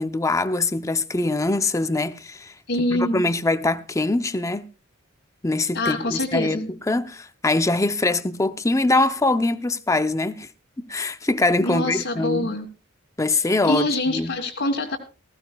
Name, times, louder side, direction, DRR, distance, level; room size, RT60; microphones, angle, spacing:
voice 1, 0.0-4.6 5.4-10.5 10.8-12.6 13.2-14.3, left 2 dB, 15° left, 0.6 m, -23 dB
voice 2, 2.7-3.3 5.7-6.7 11.6-12.7 13.6-15.0, left 1 dB, 60° left, 1.7 m, -25 dB
19.5 x 15.0 x 2.3 m
head